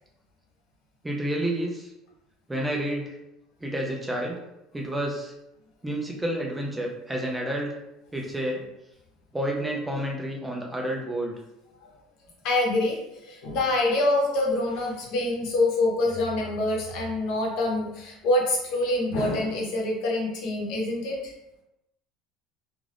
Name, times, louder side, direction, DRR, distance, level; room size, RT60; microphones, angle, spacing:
voice 1, 1.0-1.9 2.5-3.2 3.6-4.4 4.7-5.3 5.8-7.8 8.1-8.7 9.3-11.3, right 1 dB, 10° right, 0 dB, 0.4 m, -29 dB
voice 2, 12.4-13.0 13.2-21.3, left 2 dB, 60° left, -1 dB, 0.8 m, -25 dB
2.5 x 2.4 x 3.3 m, 0.88 s
cardioid pair, 145°, 0 cm